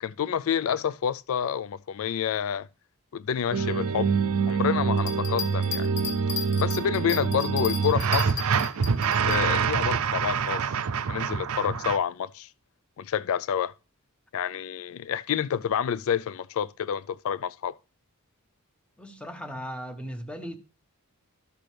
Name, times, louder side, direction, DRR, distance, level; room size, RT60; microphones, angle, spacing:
voice 1, 0.0-2.7 3.1-4.1 4.5-5.9 6.6-8.4 9.3-10.7 11.1-12.5 13.0-13.7 14.3-17.7, left 8 dB, 70° left, 0.4 m, -28 dB
sound 1, 3.5-12.0, right 6 dB, 70° right, 0.5 m, -26 dB
sound 2, 5.0-9.4, left 5 dB, 35° left, 1.4 m, -34 dB
voice 2, 19.0-20.6, equal, 5° left, 1.1 m, -37 dB
13.5 x 5.9 x 3.3 m
head